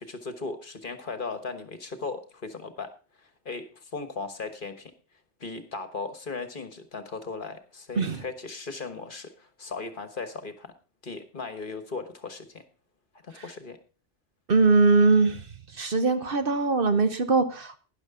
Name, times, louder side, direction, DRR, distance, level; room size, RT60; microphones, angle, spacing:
voice 1, 0.0-2.9 3.2-4.9 5.4-10.7 11.0-12.6 13.2-13.8, left 4 dB, 45° left, 1.4 m, -37 dB
voice 2, 14.5-15.4 15.7-17.8, right 3 dB, 55° right, 1.1 m, -21 dB
12.5 x 10.5 x 3.7 m
omnidirectional pair, 1.2 m